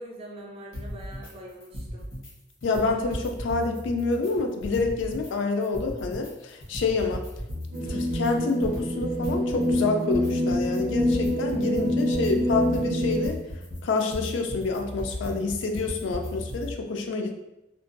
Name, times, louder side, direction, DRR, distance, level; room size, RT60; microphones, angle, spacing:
voice 1, 0.0-2.0 17.2-17.3, right 1 dB, 30° right, -1 dB, 0.4 m, -43 dB
sound 1, 0.7-1.3 1.6-2.3 2.6-5.3 5.6-16.7, left 1 dB, 90° left, 0.9 m, -37 dB
voice 2, 2.6-7.2 7.9-13.4 13.8-17.3, left 3 dB, 65° left, 4 dB, 0.3 m, -27 dB
sound 2, 7.7-13.3, equal, 85° right, 0.5 m, -26 dB
2.5 x 2.2 x 2.5 m, 0.90 s
head